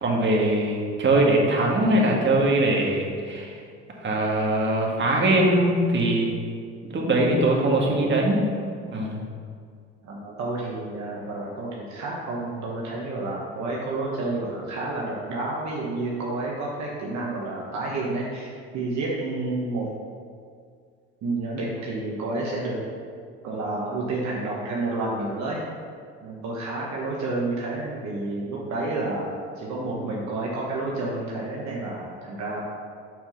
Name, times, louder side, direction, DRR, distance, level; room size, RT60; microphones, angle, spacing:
voice 1, 0.0-3.6 3.9-6.3 6.8-8.4 8.9-9.2, right 1 dB, 35° right, -2 dB, 1.7 m, -22 dB
voice 2, 10.0-19.8 21.2-22.8 23.4-25.6 26.2-32.6, right 2 dB, 60° right, -4 dB, 1.3 m, -30 dB
6.2 x 4.3 x 5.7 m, 2.1 s
supercardioid pair, 70°, 32 cm